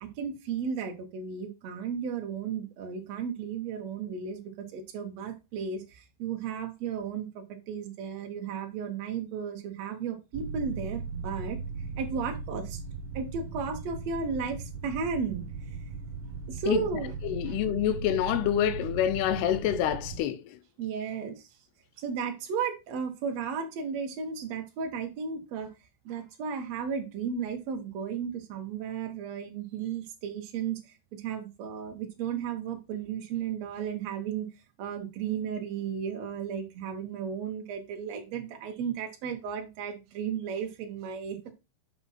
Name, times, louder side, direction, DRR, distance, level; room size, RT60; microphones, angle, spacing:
voice 1, 0.0-11.6 12.0-12.8 13.1-15.4 16.5-17.1 17.5-17.6 20.8-21.5 22.0-25.7 26.0-30.8 31.1-34.5 34.8-41.5, right 6 dB, 55° right, 2.1 m, -34 dB
sound 1, 10.3-20.2, right 4 dB, 30° right, 1.3 m, -38 dB
voice 2, 17.3-20.4, left 11 dB, 90° left, 2.8 m, -27 dB
7.3 x 5.6 x 4.2 m
omnidirectional pair, 4.5 m